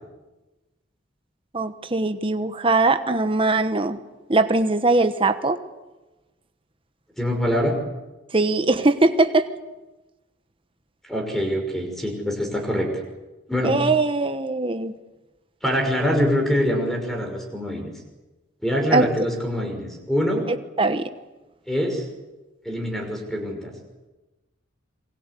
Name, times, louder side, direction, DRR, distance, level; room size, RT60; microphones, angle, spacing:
voice 1, 1.5-4.0 4.3-5.6 8.3-9.5 13.6-14.9 18.9-19.1 20.8-21.1, right 3 dB, 30° right, 9 dB, 1.2 m, -21 dB
voice 2, 7.2-7.8 11.0-12.9 13.5-13.7 15.6-17.9 18.6-20.4 21.7-22.1 22.6-23.7, equal, ahead, 3 dB, 5.9 m, -24 dB
27.5 x 23.0 x 8.4 m, 1.1 s
head